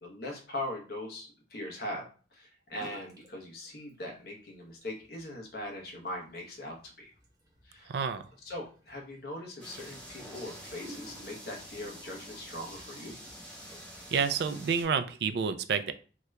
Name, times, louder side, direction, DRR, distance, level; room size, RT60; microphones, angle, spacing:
voice 1, 0.0-7.1 7.6-7.9 8.4-13.2, left 1 dB, 55° left, 0 dB, 0.9 m, -41 dB
sound 1, 2.7-3.3 3.6-4.3 4.6-14.1, right 1 dB, 20° right, 0.6 m, -54 dB
voice 2, 7.9-8.2 14.1-15.9, right 6 dB, 65° right, 11 dB, 0.3 m, -29 dB
sound 2, 9.6-14.8, equal, 5° left, 1.0 m, -47 dB
2.8 x 2.4 x 3.1 m, 0.38 s
head